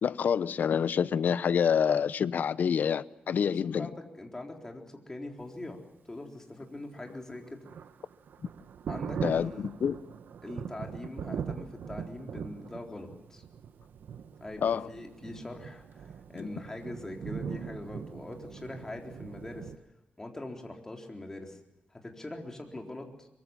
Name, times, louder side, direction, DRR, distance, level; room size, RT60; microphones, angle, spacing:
voice 1, 0.0-3.9 9.2-10.0 14.6-14.9 16.4-16.5, left 7 dB, 60° left, 0.8 m, -27 dB
voice 2, 3.3-5.8 6.1-7.6 8.9-9.6 10.4-13.4 14.4-19.7 20.2-21.6 21.9-23.3, left 2 dB, 15° left, 4.0 m, -42 dB
Thunder, 6.9-19.8, right 7 dB, 75° right, 1.2 m, -41 dB
24.0 x 23.0 x 7.4 m
wide cardioid pair, 135°, 3 cm